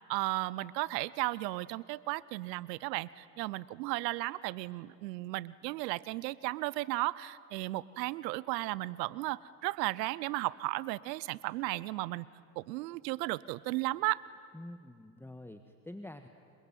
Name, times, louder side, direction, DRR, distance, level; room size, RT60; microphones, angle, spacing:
voice 1, 0.1-12.3 12.6-14.2, right 19 dB, 80° right, 21 dB, 0.7 m, -35 dB
voice 2, 14.5-16.3, left 1 dB, 5° left, 7 dB, 1.5 m, -47 dB
28.5 x 22.5 x 9.1 m, 2.3 s
hypercardioid pair, 70°, 49 cm